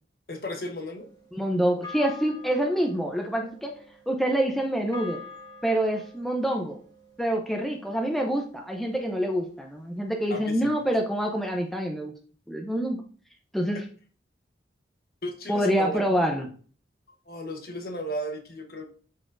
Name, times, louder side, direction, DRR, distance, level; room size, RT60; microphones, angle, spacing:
voice 1, 0.3-1.1 10.3-10.7 15.2-16.0 17.3-18.8, equal, 55° left, 4 dB, 1.1 m, -34 dB
sound 1, 1.0-9.5, left 4 dB, 20° left, 1.4 m, -47 dB
voice 2, 1.3-3.7 4.1-5.2 5.6-6.8 7.2-12.1 12.5-13.0 13.5-13.8 15.5-16.4, right 1 dB, ahead, 1 dB, 0.6 m, -26 dB
12.0 x 4.1 x 2.6 m, 0.43 s
head